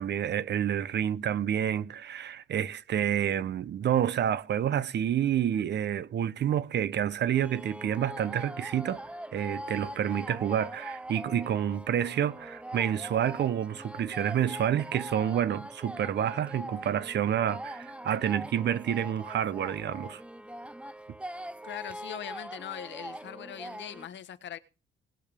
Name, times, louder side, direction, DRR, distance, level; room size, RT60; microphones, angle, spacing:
voice 1, 0.0-9.0 9.3-20.2, right 9 dB, 60° right, 0.9 m, -29 dB
sound 1, 7.3-24.1, right 1 dB, 5° right, 0.7 m, -42 dB
voice 2, 21.6-24.6, left 10 dB, 65° left, 1.4 m, -41 dB
20.0 x 6.7 x 5.2 m
cardioid pair, 90°, 20 cm